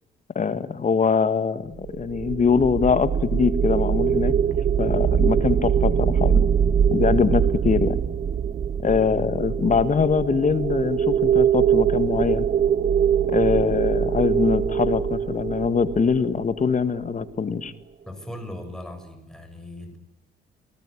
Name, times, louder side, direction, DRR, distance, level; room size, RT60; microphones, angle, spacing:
voice 1, 0.4-4.3 4.8-6.3 6.9-8.0 8.8-12.5 13.3-17.7, left 5 dB, 40° left, 13 dB, 1.7 m, -23 dB
sound 1, 1.8-17.0, right 8 dB, 45° right, 1.0 m, -23 dB
voice 2, 18.1-20.0, left 1 dB, 5° left, 5 dB, 7.0 m, -37 dB
29.5 x 19.0 x 9.9 m, 0.80 s
cardioid pair, 90°, 20 cm